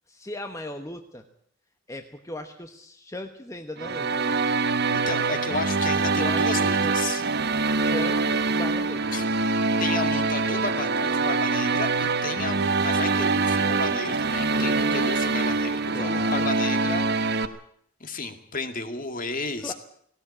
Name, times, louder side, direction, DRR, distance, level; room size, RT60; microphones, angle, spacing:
voice 1, 0.1-1.2 1.9-4.5 6.2-6.9 7.7-9.2 14.5-15.0 15.9-16.5 19.6-19.7, left 1 dB, 15° left, 6 dB, 1.1 m, -37 dB
sound 1, 3.8-17.5, right 3 dB, 50° right, 1.2 m, -24 dB
voice 2, 4.9-7.2 9.1-9.2 9.8-17.0 18.0-19.7, left 3 dB, 40° left, 8 dB, 2.2 m, -33 dB
18.0 x 17.5 x 8.7 m, 0.65 s
head